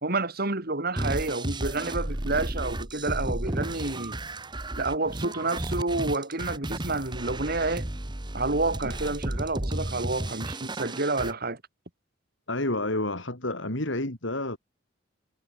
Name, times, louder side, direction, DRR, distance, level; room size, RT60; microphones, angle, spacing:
voice 1, 0.0-4.2 4.8-7.9 8.3-11.6, right 3 dB, 55° right, 2.8 m, -29 dB
sound 1, 1.0-11.3, right 1 dB, 25° right, 1.4 m, -33 dB
voice 2, 12.5-14.6, left 2 dB, 75° left, 4.4 m, -29 dB
head